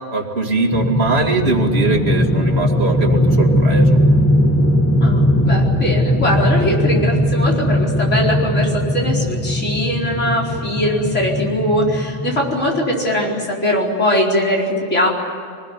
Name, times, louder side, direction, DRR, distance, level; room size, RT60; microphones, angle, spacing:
voice 1, 0.1-4.0, right 3 dB, 55° right, 3 dB, 2.6 m, -21 dB
sound 1, 0.7-12.9, equal, 10° left, 1.4 m, -18 dB
voice 2, 5.0-15.1, equal, 75° left, -2 dB, 5.0 m, -20 dB
24.5 x 20.0 x 9.8 m, 2.3 s
omnidirectional pair, 1.3 m